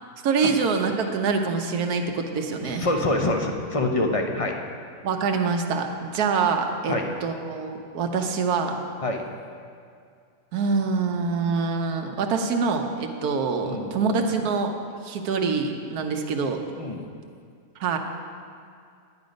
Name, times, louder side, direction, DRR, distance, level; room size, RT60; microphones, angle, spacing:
voice 1, 0.2-2.9 5.0-6.9 7.2-8.8 10.5-14.7 15.0-16.6 17.8-18.0, right 5 dB, 80° right, 4 dB, 1.3 m, -25 dB
voice 2, 2.6-4.5 6.9-7.1 9.0-9.3 13.6-13.9 16.8-17.0, left 2 dB, 35° left, 2 dB, 0.6 m, -25 dB
10.5 x 9.6 x 5.2 m, 2.2 s
omnidirectional pair, 1.6 m